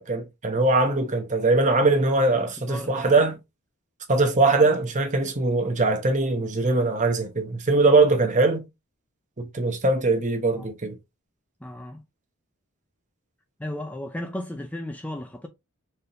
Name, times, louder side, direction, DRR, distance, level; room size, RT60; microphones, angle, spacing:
voice 1, 0.0-3.4 4.1-8.7 9.4-10.9, right 3 dB, 35° right, 0.9 m, -21 dB
voice 2, 2.3-2.9 10.5-10.8 11.6-12.0 13.6-15.5, left 1 dB, 5° left, 0.4 m, -35 dB
4.3 x 3.5 x 2.5 m
head